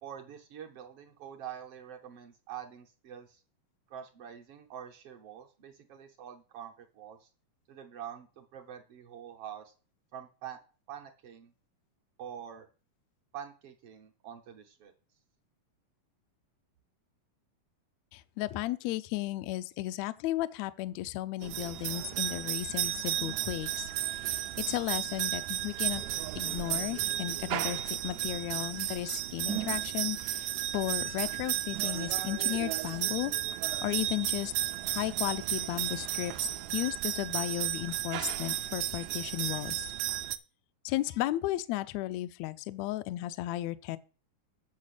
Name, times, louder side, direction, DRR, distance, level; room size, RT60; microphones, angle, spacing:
voice 1, 0.0-3.4 3.9-7.3 7.7-9.7 10.1-10.6 10.9-11.5 12.2-12.7 13.3-14.9, right 9 dB, 70° right, 1.4 m, -45 dB
voice 2, 18.1-26.0 26.3-33.3 33.8-34.5 34.8-39.8 40.8-44.0, left 16 dB, 90° left, 1.6 m, -34 dB
sound 1, 21.4-40.4, right 13 dB, 85° right, 1.6 m, -33 dB
8.5 x 5.9 x 6.5 m
omnidirectional pair, 3.8 m